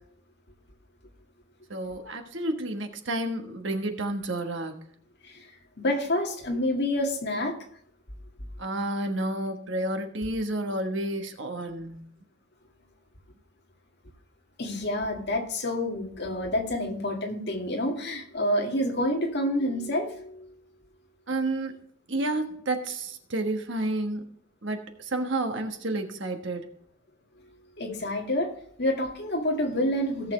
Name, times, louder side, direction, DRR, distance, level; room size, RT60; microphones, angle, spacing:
voice 1, 1.7-4.8 8.6-12.1 21.3-21.8 22.1-24.2 24.6-26.7, right 2 dB, 60° right, 5 dB, 1.4 m, -30 dB
voice 2, 5.8-7.6 10.8-10.9 14.6-20.5 27.8-28.5 28.8-30.3, left 1 dB, 50° left, 1 dB, 2.1 m, -28 dB
17.5 x 6.7 x 3.3 m, 0.64 s
head